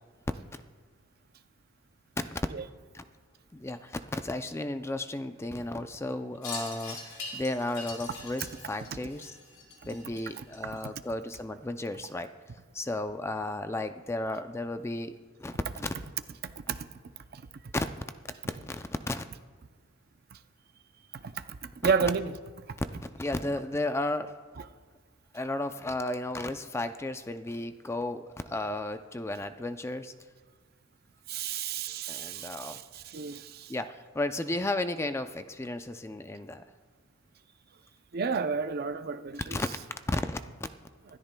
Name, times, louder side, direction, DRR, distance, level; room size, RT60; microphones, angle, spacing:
voice 1, 2.2-2.5 2.9-3.0 3.5-9.4 9.8-12.3 12.7-15.1 15.4-15.9 17.7-17.9 18.5-19.2 21.8-22.1 23.0-24.3 25.3-30.1 32.1-32.8 33.7-36.6 39.5-39.7 40.1-40.4, left 2 dB, 15° left, 0.4 m, -34 dB
Wind chime, 6.4-11.0, left 3 dB, 75° left, 4.4 m, -42 dB
voice 2, 10.4-10.9 16.4-17.0 17.3-17.5 20.3-20.4 21.1-22.8 31.3-33.7 38.1-39.6, right 5 dB, 50° right, 0.5 m, -32 dB
25.5 x 13.5 x 2.2 m
head